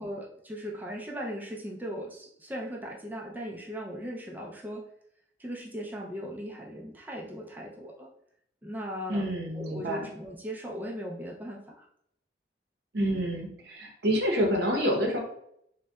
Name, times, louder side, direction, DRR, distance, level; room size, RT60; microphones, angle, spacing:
voice 1, 0.0-4.8 5.4-8.1 8.6-9.3 9.6-11.9, equal, 10° right, -2 dB, 0.4 m, -38 dB
voice 2, 9.1-10.1 12.9-15.2, equal, 65° right, 0 dB, 0.7 m, -28 dB
3.7 x 2.1 x 2.2 m, 0.72 s
head